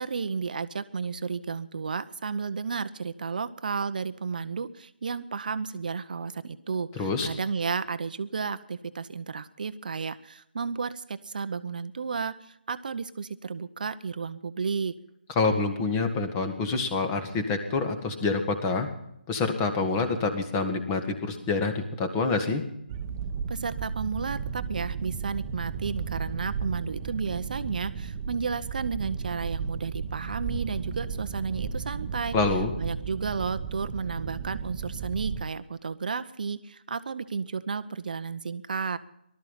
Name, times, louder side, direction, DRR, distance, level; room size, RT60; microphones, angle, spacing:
voice 1, 0.0-15.0 23.5-32.4 32.8-39.0, right 5 dB, 55° right, 12 dB, 0.8 m, -32 dB
voice 2, 7.0-7.3 15.4-18.9 19.3-22.6 32.3-32.7, left 3 dB, 20° left, 6 dB, 1.9 m, -27 dB
sound 1, 22.9-35.4, right 6 dB, 30° right, 1.1 m, -34 dB
19.0 x 12.5 x 5.7 m, 0.78 s
figure-of-eight pair, 150°, 5 cm